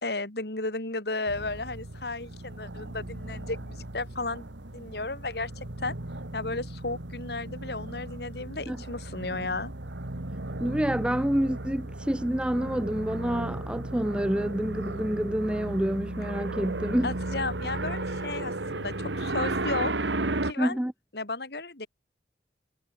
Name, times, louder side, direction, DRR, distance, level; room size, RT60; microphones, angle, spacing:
voice 1, 0.0-4.5 4.7-6.0 6.3-9.7 17.0-19.9 20.4-20.8 21.1-21.9, left 3 dB, 60° left, 2.9 m, -34 dB
sound 1, 1.3-20.5, right 2 dB, 90° right, 2.1 m, -35 dB
voice 2, 10.6-17.1 20.6-20.9, equal, 5° right, 0.4 m, -28 dB
head